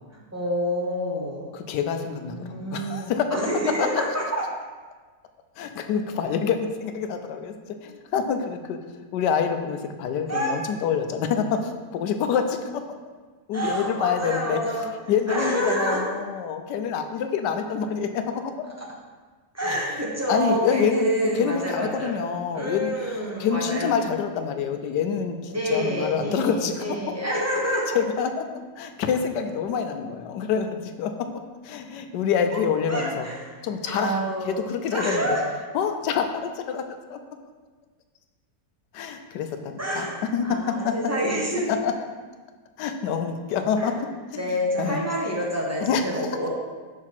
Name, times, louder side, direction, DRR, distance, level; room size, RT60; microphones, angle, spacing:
voice 1, 0.3-1.6 2.3-4.5 10.3-10.5 13.5-14.9 15.3-16.1 18.8-18.9 19.5-22.2 22.5-23.9 25.5-28.0 32.5-32.6 32.9-33.5 33.9-34.6 34.9-35.4 39.8-41.7 43.8-43.9 44.4-46.5, equal, 15° right, -3 dB, 0.7 m, -27 dB
voice 2, 1.5-3.4 3.8-3.9 5.6-7.6 7.8-8.8 9.1-12.8 13.5-14.6 15.1-18.5 19.7-19.8 20.3-26.8 27.9-28.4 28.8-33.3 33.6-34.2 34.4-35.4 35.7-36.8 37.1-37.2 38.9-40.1 40.3-40.9 41.7-41.9 42.8-43.9 44.4-45.0 45.8-46.0, left 7 dB, 85° left, 7 dB, 1.2 m, -26 dB
6.4 x 3.6 x 5.8 m, 1.4 s
omnidirectional pair, 1.8 m